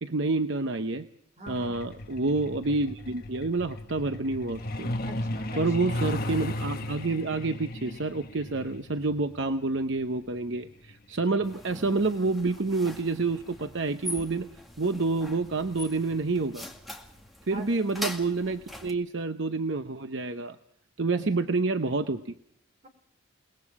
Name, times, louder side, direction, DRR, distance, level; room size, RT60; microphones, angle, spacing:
voice 1, 0.0-1.1 1.5-4.9 5.6-14.5 14.8-16.6 17.5-20.6 21.0-22.2, right 3 dB, 55° right, 8 dB, 0.8 m, -28 dB
voice 2, 1.4-1.8 5.0-5.7 17.5-17.9 21.0-21.2 22.8-22.9, right 2 dB, 30° right, 6 dB, 3.2 m, -44 dB
Truck, 1.5-13.8 15.0-15.2 15.6-15.7 16.1-16.4 16.7-16.8 17.3-17.4, left 1 dB, 45° left, 1.3 m, -36 dB
sound 1, 11.4-18.9, left 1 dB, ahead, 2.2 m, -42 dB
29.5 x 20.0 x 4.8 m, 0.70 s
head